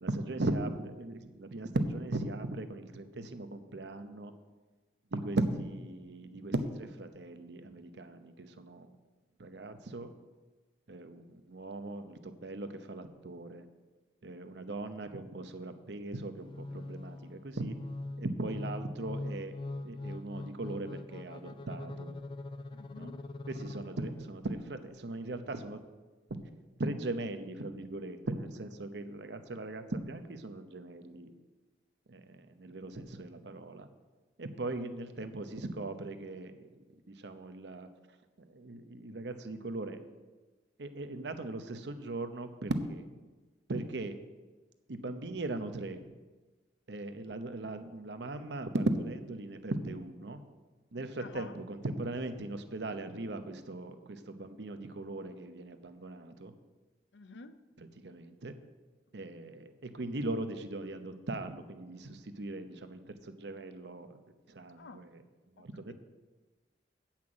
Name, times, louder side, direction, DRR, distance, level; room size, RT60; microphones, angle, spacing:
voice 1, 0.0-4.3 5.1-8.9 9.4-10.1 10.9-13.7 14.2-17.7 18.2-19.6 19.8-22.2 23.0-23.1 23.5-25.8 26.3-26.4 26.8-31.3 32.1-33.9 34.4-36.7 37.1-37.9 38.4-40.0 40.8-43.0 43.7-44.2 44.9-46.0 46.9-50.4 50.9-56.5 57.8-58.5 59.1-64.2 64.5-65.2 65.6-65.9, right 2 dB, 80° right, 8 dB, 0.8 m, -38 dB
sound 1, 16.4-24.4, left 2 dB, 25° left, 0.3 m, -42 dB
voice 2, 22.7-23.2 51.2-51.6 57.1-57.6 64.8-65.0 65.9-66.0, left 3 dB, 85° left, 12 dB, 0.6 m, -49 dB
8.6 x 5.8 x 7.8 m, 1.3 s
head